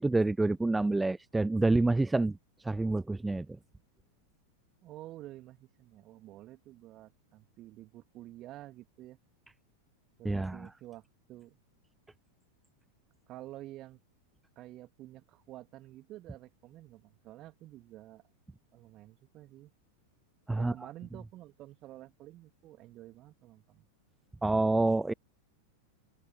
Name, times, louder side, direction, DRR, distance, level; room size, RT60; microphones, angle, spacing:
voice 1, 0.0-2.4 2.6-3.5 10.2-10.7 20.5-20.7 24.4-25.1, right 2 dB, 5° right, 0.5 m, -27 dB
voice 2, 4.8-9.2 10.2-11.6 13.3-14.0 14.5-18.2 18.7-19.7 20.5-23.9, right 15 dB, 35° right, 1.7 m, -50 dB
figure-of-eight pair, 90°, 0 cm